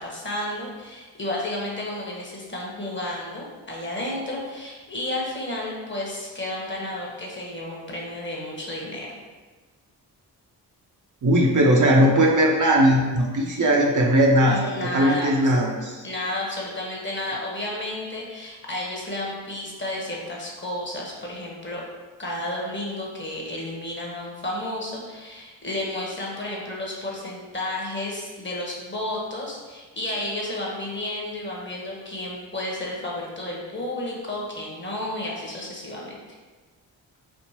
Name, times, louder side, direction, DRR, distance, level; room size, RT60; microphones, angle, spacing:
voice 1, 0.0-9.2 14.4-15.5 16.0-21.8 22.2-36.2, left 1 dB, 25° left, -3 dB, 1.0 m, -32 dB
voice 2, 11.2-16.0, equal, 45° right, -1 dB, 0.7 m, -19 dB
3.5 x 2.5 x 2.9 m, 1.3 s
supercardioid pair, 45°, 43 cm